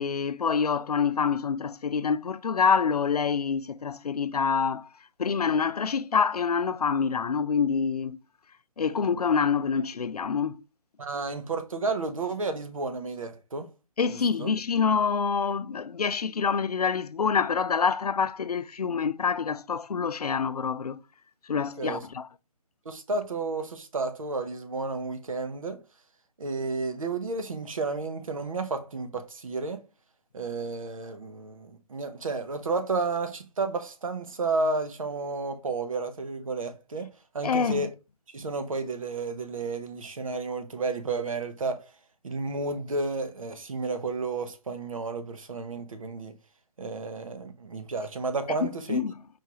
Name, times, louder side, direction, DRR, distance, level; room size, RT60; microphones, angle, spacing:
voice 1, 0.0-4.9 5.2-8.2 8.8-10.6 14.0-21.0 21.5-22.3 37.4-37.9 48.6-49.1, left 6 dB, 75° left, 0.4 m, -26 dB
voice 2, 11.0-13.7 14.1-14.5 21.8-22.0 22.8-25.8 26.4-29.9 30.3-37.9 38.3-41.9 42.2-46.3 46.8-49.0, right 3 dB, 60° right, 0.9 m, -32 dB
4.6 x 3.3 x 3.0 m
figure-of-eight pair, 145°, 20 cm